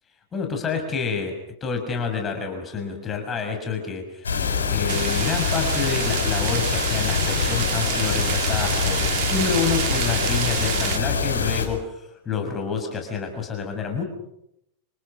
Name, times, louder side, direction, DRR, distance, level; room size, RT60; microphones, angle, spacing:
voice 1, 0.3-1.3 1.6-9.0 9.3-14.0, left 5 dB, 20° left, 4 dB, 6.5 m, -28 dB
sound 1, 4.2-11.7, left 5 dB, 70° left, 6.8 m, -24 dB
sound 2, 4.9-11.0, right 18 dB, 45° right, 1.9 m, -29 dB
29.5 x 28.0 x 6.2 m, 0.80 s
figure-of-eight pair, 90°, 0 cm